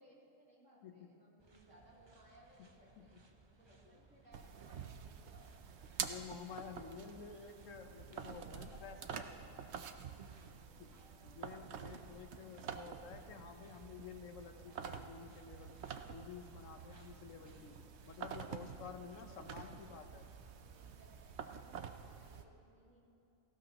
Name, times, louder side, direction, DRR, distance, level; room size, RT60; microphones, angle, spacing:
voice 1, 0.0-5.5 6.8-7.3 8.3-9.2 11.5-13.0 18.8-19.5 20.5-23.0, right 1 dB, 80° right, -6 dB, 3.2 m, -65 dB
voice 2, 0.8-1.2 2.6-2.7 3.0-3.1 6.0-9.3 10.8-10.9 11.2-15.8 16.1-17.8 18.0-20.3, left 6 dB, 75° left, 7 dB, 1.2 m, -51 dB
sound 1, 1.4-21.3, right 3 dB, 30° right, 0.6 m, -66 dB
sound 2, 4.3-22.4, right 7 dB, 65° right, 0.9 m, -48 dB
sound 3, 7.8-17.9, equal, ahead, 1.1 m, -66 dB
17.5 x 16.0 x 3.0 m, 2.7 s
omnidirectional pair, 1.3 m